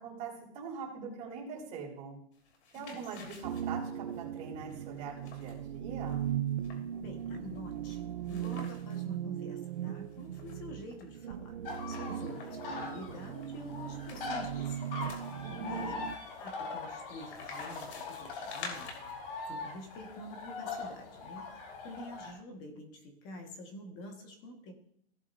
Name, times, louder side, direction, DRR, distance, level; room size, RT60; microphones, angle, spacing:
voice 1, 0.0-2.2 2.7-6.3 15.4-16.1, right 5 dB, 20° right, -4 dB, 3.5 m, -43 dB
sound 1, 2.4-9.1 9.5-9.6 9.8-11.1 11.6-12.7 13.4-19.1, left 4 dB, 90° left, 3.1 m, -50 dB
sound 2, 3.4-16.2, right 10 dB, 55° right, 0.7 m, -38 dB
voice 2, 7.0-15.9 16.4-18.9 19.5-24.7, left 1 dB, 25° left, 3 dB, 1.6 m, -47 dB
sound 3, 11.6-22.3, left 3 dB, 60° left, 4.3 m, -42 dB
17.0 x 7.7 x 2.7 m, 0.67 s
supercardioid pair, 175°, 32 cm